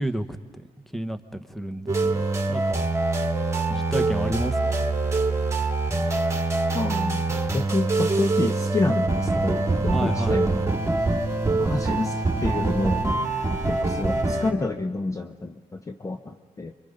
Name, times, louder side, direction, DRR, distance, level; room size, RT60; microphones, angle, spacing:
voice 1, 0.0-2.2 2.5-2.8 3.7-4.9 9.8-10.4, right 1 dB, ahead, 10 dB, 1.0 m, -31 dB
sound 1, 1.9-14.5, right 3 dB, 20° right, 2.2 m, -24 dB
voice 2, 6.7-7.3 7.5-10.6 11.6-13.1 13.7-16.7, left 2 dB, 20° left, 6 dB, 0.7 m, -28 dB
28.5 x 23.5 x 5.2 m, 1.5 s
cardioid pair, 100°, 16 cm